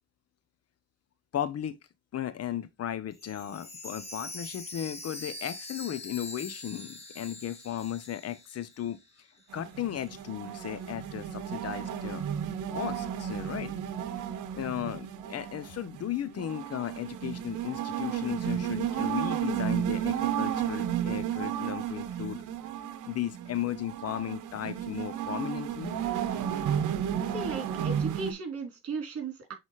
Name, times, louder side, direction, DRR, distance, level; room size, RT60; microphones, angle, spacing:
voice 1, 1.3-1.8 2.1-9.0 9.5-12.2 12.7-13.7 14.5-22.4 23.0-25.9, left 11 dB, 55° left, 0.8 m, -35 dB
Chime, 3.1-9.1 9.4-9.5 10.1-10.2, left 1 dB, 20° left, 2.0 m, -43 dB
sound 1, 9.5-28.3, right 9 dB, 80° right, 0.9 m, -33 dB
voice 2, 27.3-29.5, right 4 dB, 50° right, 3.4 m, -36 dB
7.5 x 4.0 x 3.1 m
cardioid pair, 90°, 30 cm